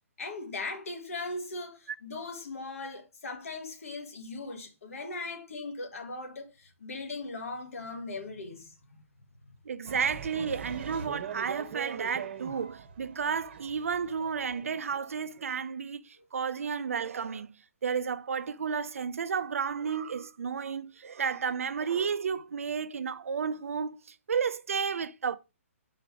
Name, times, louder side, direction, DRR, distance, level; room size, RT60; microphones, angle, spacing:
voice 1, 0.2-9.0 9.4-9.5, left 3 dB, 75° left, 1.7 m, -39 dB
voice 2, 9.6-17.5 17.8-25.4, right 6 dB, 75° right, 0.6 m, -32 dB
sound 1, 9.9-15.5, right 7 dB, 45° right, 1.2 m, -42 dB
5.1 x 4.7 x 4.6 m
hypercardioid pair, 150°, 8 cm